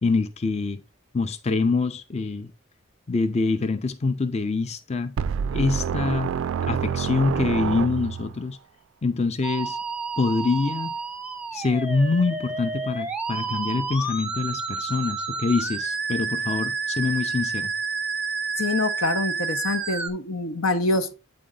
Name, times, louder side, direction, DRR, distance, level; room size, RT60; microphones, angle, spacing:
voice 1, 0.0-0.8 1.1-2.5 3.1-5.1 5.5-6.3 6.6-8.6 9.0-9.8 10.2-10.9 11.5-17.7, left 3 dB, 30° left, 0.5 m, -25 dB
sound 1, 5.2-8.4, right 7 dB, 70° right, 0.3 m, -27 dB
Musical instrument, 9.4-20.1, right 4 dB, 5° right, 0.8 m, -30 dB
voice 2, 18.6-21.1, left 2 dB, 85° left, 1.0 m, -25 dB
8.6 x 4.4 x 3.7 m
head